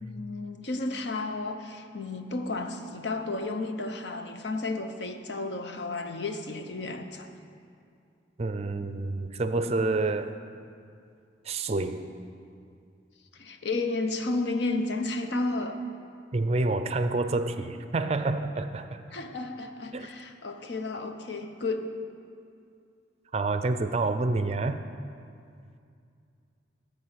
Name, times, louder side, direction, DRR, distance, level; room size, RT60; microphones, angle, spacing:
voice 1, 0.0-7.3 13.3-15.8 19.1-21.9, left 2 dB, 70° left, 6 dB, 0.8 m, -32 dB
voice 2, 8.4-10.4 11.5-12.1 16.3-19.0 19.9-20.1 23.3-24.8, right 3 dB, 35° right, 9 dB, 0.4 m, -28 dB
13.0 x 5.0 x 8.5 m, 2.4 s
head